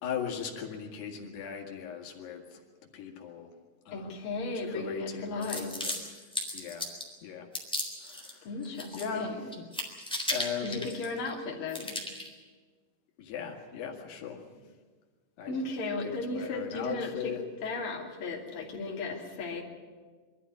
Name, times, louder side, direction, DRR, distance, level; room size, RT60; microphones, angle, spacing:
voice 1, 0.0-2.6 2.9-3.5 3.9-4.2 4.7-6.0 6.5-6.9 7.2-7.5 8.0-8.5 8.9-9.7 10.3-10.9 13.2-14.4 15.4-15.6 16.0-17.4, left 7 dB, 85° left, 1 dB, 4.1 m, -38 dB
voice 2, 3.9-5.7 8.4-9.4 10.6-12.0 15.5-19.6, left 3 dB, 35° left, -2 dB, 3.4 m, -35 dB
sound 1, 5.4-7.1 7.5-8.3 8.6-9.3 9.5-11.3 11.7-12.3, left 1 dB, ahead, 3.0 m, -35 dB
24.0 x 13.5 x 9.6 m, 1.5 s
omnidirectional pair, 4.6 m